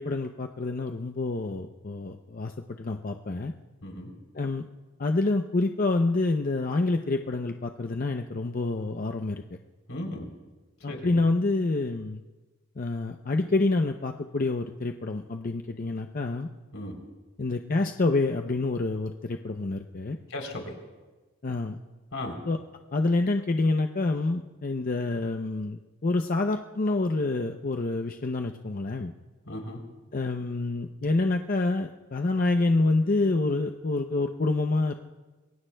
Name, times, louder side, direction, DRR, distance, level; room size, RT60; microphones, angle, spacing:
voice 1, 0.0-2.5 2.8-3.5 4.3-4.6 5.0-9.4 10.8-12.2 12.8-16.5 17.4-20.2 21.4-21.8 22.5-22.6 22.9-29.1 30.1-34.9, left 2 dB, 45° left, 5 dB, 0.6 m, -27 dB
voice 2, 3.8-4.1 9.9-10.2 10.9-11.3 16.7-16.9 20.3-20.7 22.1-22.4 29.5-29.8, left 1 dB, 80° left, 2 dB, 3.5 m, -36 dB
27.0 x 22.5 x 2.3 m, 1.2 s
head